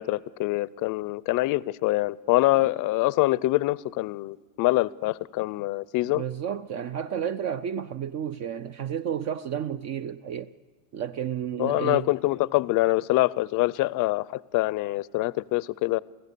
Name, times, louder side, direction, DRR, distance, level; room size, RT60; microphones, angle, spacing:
voice 1, 0.0-6.2 11.6-16.0, left 19 dB, 45° left, 0.5 m, -25 dB
voice 2, 6.1-10.5 10.9-12.1, right 9 dB, 40° right, 0.5 m, -31 dB
28.5 x 16.0 x 6.8 m
supercardioid pair, 115°, 44 cm